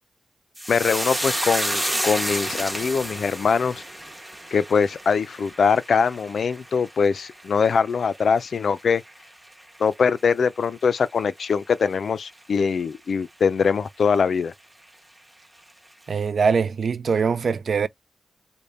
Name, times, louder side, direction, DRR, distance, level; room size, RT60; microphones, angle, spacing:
sound 1, 0.6-9.2 9.5-10.1 10.4-10.6, right 1 dB, 10° right, 0.8 m, -31 dB
voice 1, 0.7-3.8 4.5-9.0 9.8-14.5, left 6 dB, 70° left, 0.4 m, -22 dB
voice 2, 16.1-17.9, right 5 dB, 60° right, 0.4 m, -22 dB
3.4 x 2.1 x 4.1 m
wide cardioid pair, 115°, 0 cm